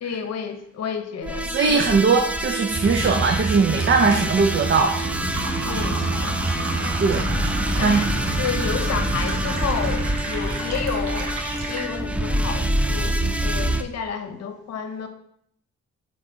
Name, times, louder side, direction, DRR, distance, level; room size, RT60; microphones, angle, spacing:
voice 1, 0.0-1.8 5.6-6.5 7.8-11.3 11.7-15.1, left 6 dB, 60° left, 7 dB, 0.9 m, -31 dB
sound 1, 1.2-13.8, right 1 dB, 5° right, 0.4 m, -26 dB
voice 2, 1.5-5.0 7.0-7.3 7.8-8.0, right 4 dB, 40° right, 3 dB, 0.7 m, -20 dB
Fill (with liquid), 3.8-11.9, right 3 dB, 80° right, 1.4 m, -34 dB
sound 2, 5.0-10.1, equal, 20° right, 1.6 m, -32 dB
6.5 x 3.8 x 3.9 m, 0.70 s
cardioid pair, 90°, 30 cm